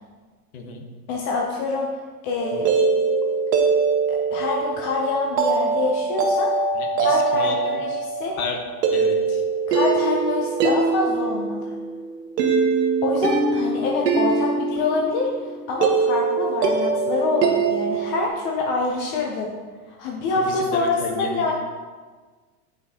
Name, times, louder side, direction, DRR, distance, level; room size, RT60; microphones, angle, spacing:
voice 1, 0.5-0.9 6.7-7.8 8.4-8.6 8.9-9.4 20.4-21.5, left 4 dB, 60° left, 3 dB, 1.2 m, -32 dB
voice 2, 1.1-2.0 2.2-2.7 4.1-6.5 7.0-8.4 9.7-11.8 13.0-19.5 19.9-21.5, left 3 dB, 25° left, -1 dB, 0.4 m, -25 dB
sound 1, 2.4-18.3, right 4 dB, 85° right, 1.1 m, -23 dB
8.3 x 5.1 x 2.7 m, 1.4 s
supercardioid pair, 135°, 47 cm